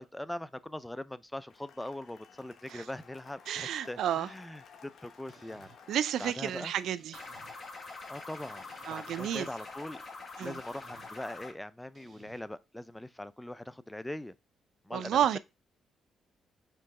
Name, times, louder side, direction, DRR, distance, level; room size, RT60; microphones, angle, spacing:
voice 1, 0.0-5.7 6.2-6.7 8.1-8.6 8.9-10.0 10.4-14.3 14.8-15.2, left 1 dB, 10° left, 0.3 m, -41 dB
Cheering / Applause, 1.5-6.9, left 6 dB, 60° left, 0.9 m, -56 dB
voice 2, 3.5-4.3 5.9-7.2 8.8-9.5 10.4-10.6 14.9-15.4, right 10 dB, 75° right, 0.3 m, -31 dB
sound 1, 5.3-5.8 6.8-7.6 8.4-9.3 10.4-11.1 11.9-12.4, right 5 dB, 45° right, 1.1 m, -58 dB
sound 2, 7.1-11.5, left 3 dB, 40° left, 1.1 m, -45 dB
4.5 x 3.0 x 3.5 m
cardioid pair, 90°, 0 cm